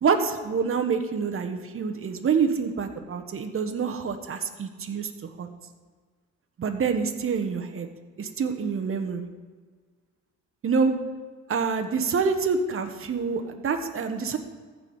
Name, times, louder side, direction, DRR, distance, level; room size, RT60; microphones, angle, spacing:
voice 1, 0.0-5.1 5.4-5.5 6.6-7.9 8.2-9.3 10.6-10.9 11.5-14.4, right 5 dB, 45° right, 7 dB, 1.2 m, -26 dB
15.0 x 5.0 x 5.5 m, 1.5 s
cardioid pair, 90°, 30 cm